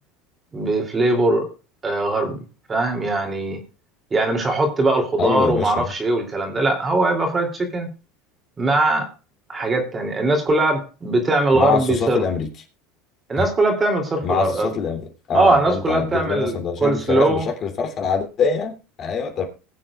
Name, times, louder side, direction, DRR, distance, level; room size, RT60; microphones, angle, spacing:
voice 1, 0.5-1.5 1.8-2.4 2.7-3.6 4.1-7.9 8.6-9.1 9.5-12.2 13.3-14.7 15.3-17.5, right 2 dB, 20° right, 3 dB, 3.0 m, -20 dB
voice 2, 5.2-5.9 11.5-12.5 13.4-13.5 14.2-15.0 15.3-19.5, left 6 dB, 40° left, 2 dB, 3.0 m, -24 dB
20.5 x 7.5 x 2.4 m, 0.33 s
supercardioid pair, 115°, 0 cm